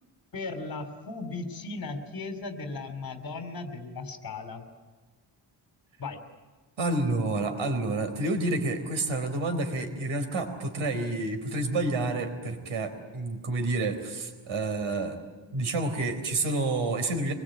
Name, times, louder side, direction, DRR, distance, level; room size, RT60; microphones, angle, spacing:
voice 1, 0.3-4.6 6.0-6.2, left 3 dB, 50° left, 7 dB, 3.2 m, -36 dB
voice 2, 6.8-15.2 15.5-17.3, right 2 dB, 85° right, 6 dB, 4.2 m, -29 dB
25.0 x 21.5 x 8.8 m, 1.3 s
wide cardioid pair, 160°, 46 cm